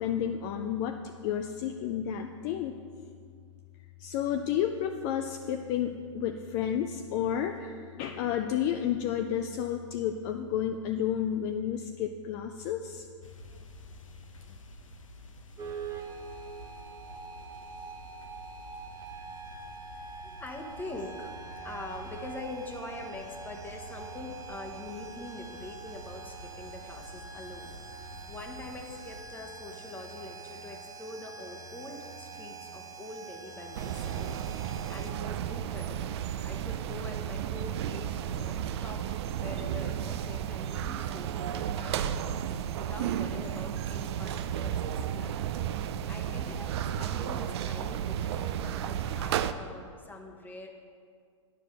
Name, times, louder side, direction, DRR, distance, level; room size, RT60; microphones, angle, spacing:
voice 1, 0.0-2.8 4.0-13.1, left 9 dB, 40° left, 6 dB, 0.4 m, -31 dB
sound 1, 13.2-29.2, left 1 dB, 85° left, 0.8 m, -50 dB
sound 2, 15.6-35.1, right 5 dB, 20° right, 0.9 m, -44 dB
voice 2, 19.9-27.7 28.3-42.2 42.5-45.4 46.1-50.8, left 2 dB, 10° left, 2 dB, 1.0 m, -44 dB
sound 3, 33.7-49.5, right 9 dB, 55° right, 0.4 m, -33 dB
9.9 x 5.0 x 6.6 m, 2.2 s
hypercardioid pair, 115°, 16 cm